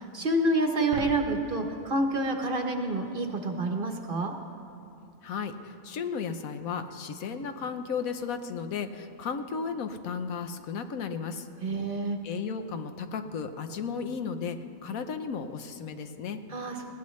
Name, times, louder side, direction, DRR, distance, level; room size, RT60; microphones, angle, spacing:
voice 1, 0.0-4.3 11.6-12.2 16.5-16.8, right 2 dB, 45° right, 4 dB, 1.0 m, -28 dB
sound 1, 0.8-3.3, right 8 dB, 75° right, 1.0 m, -43 dB
voice 2, 5.2-11.5 12.2-16.4, left 6 dB, 75° left, 8 dB, 1.2 m, -34 dB
20.5 x 16.0 x 3.2 m, 2.6 s
omnidirectional pair, 1.5 m